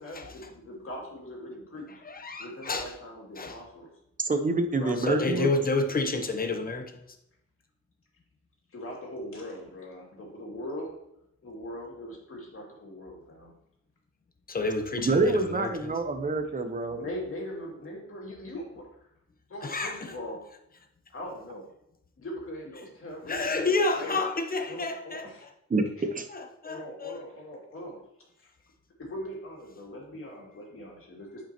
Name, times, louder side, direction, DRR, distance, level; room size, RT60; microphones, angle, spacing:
voice 1, 0.0-2.0 2.4-3.9 4.7-5.6 8.7-10.9 11.4-13.5 16.9-19.1 19.5-20.4 21.1-21.7 22.2-24.2 24.7-25.5 26.0-26.1 26.6-28.0 28.4-28.5 29.0-31.5, left 1 dB, 45° left, 2.5 m, -40 dB
voice 2, 2.0-3.0 3.4-3.6 5.0-7.0 14.5-15.9 19.6-20.1 23.2-25.5 26.3-27.2, left 3 dB, 30° left, 0.9 m, -30 dB
voice 3, 4.2-5.5 15.0-17.0 25.7-26.3, right 3 dB, 25° right, 0.8 m, -27 dB
8.5 x 5.2 x 2.9 m
cardioid pair, 105°, 29 cm